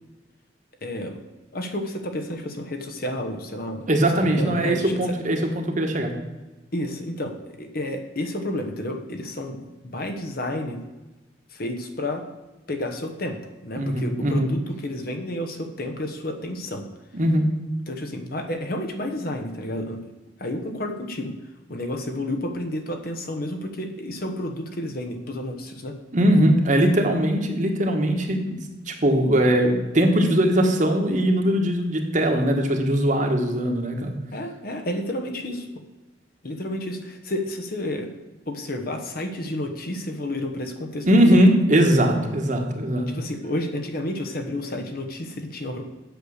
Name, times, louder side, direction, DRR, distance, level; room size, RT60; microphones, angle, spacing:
voice 1, 0.8-1.2 1.5-5.2 6.7-10.8 11.5-12.3 12.7-16.9 17.9-20.0 20.4-21.4 21.7-26.0 34.3-35.7 36.4-38.1 38.5-41.4 43.2-45.9, left 1 dB, 55° left, 5 dB, 1.1 m, -31 dB
voice 2, 3.9-6.1 13.8-14.5 17.1-17.5 26.1-28.6 28.9-34.1 41.0-43.1, right 1 dB, 45° right, 3 dB, 1.4 m, -20 dB
8.2 x 6.6 x 6.5 m, 1.1 s
head